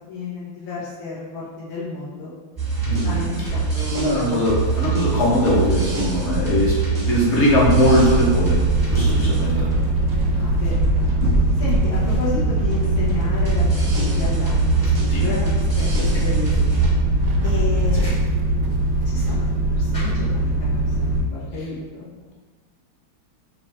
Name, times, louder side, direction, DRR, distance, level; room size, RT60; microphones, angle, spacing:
voice 1, 0.1-2.3 3.0-4.4 4.9-5.0 10.3-11.1 11.6-16.7 17.4-18.0 19.1-22.1, left 3 dB, 75° left, -8 dB, 2.1 m, -32 dB
sound 1, 2.6-16.9, right 4 dB, 30° right, 0.4 m, -26 dB
voice 2, 2.8-3.1 3.9-8.6 8.9-9.7 15.1-15.2, equal, 45° left, -5 dB, 1.1 m, -20 dB
Wind, 2.9-19.5 19.8-19.9 20.9-21.0, equal, 70° right, 1.0 m, -30 dB
sound 2, 7.6-21.2, right 1 dB, 25° left, 0.9 m, -21 dB
4.6 x 3.3 x 3.2 m, 1.4 s
omnidirectional pair, 2.1 m